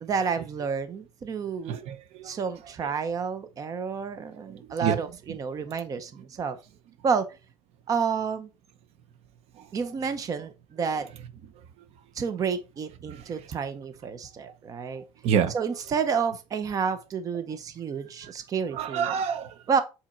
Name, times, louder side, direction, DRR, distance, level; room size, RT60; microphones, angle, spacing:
voice 1, 0.0-1.8 2.2-6.6 7.0-7.2 7.9-8.5 9.7-11.1 12.2-15.0 15.5-19.1 19.7-19.8, right 6 dB, 30° right, 0.8 m, -30 dB
voice 2, 1.7-2.4 4.5-5.0 9.6-9.7 13.1-13.3 15.2-15.6 18.2-18.3 18.7-19.6, right 8 dB, 60° right, 0.9 m, -28 dB
7.6 x 4.3 x 4.4 m
cardioid pair, 155°, 12 cm